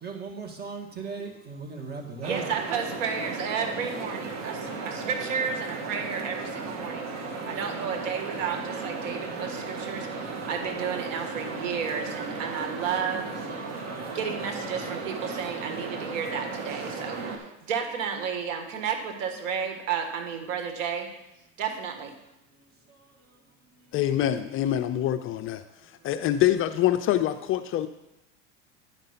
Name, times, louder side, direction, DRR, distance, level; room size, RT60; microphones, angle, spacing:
voice 1, 0.0-2.5, right 5 dB, 25° right, 1 dB, 1.9 m, -36 dB
sound 1, 2.2-17.4, right 4 dB, 45° right, 1.8 m, -35 dB
voice 2, 2.2-7.1 7.5-13.3 14.1-17.2 17.6-21.1 21.6-22.1, right 6 dB, 80° right, 5 dB, 1.7 m, -32 dB
voice 3, 23.9-25.6 26.0-27.9, left 12 dB, 35° left, 9 dB, 0.5 m, -25 dB
10.5 x 5.3 x 5.7 m, 0.89 s
supercardioid pair, 115°, 38 cm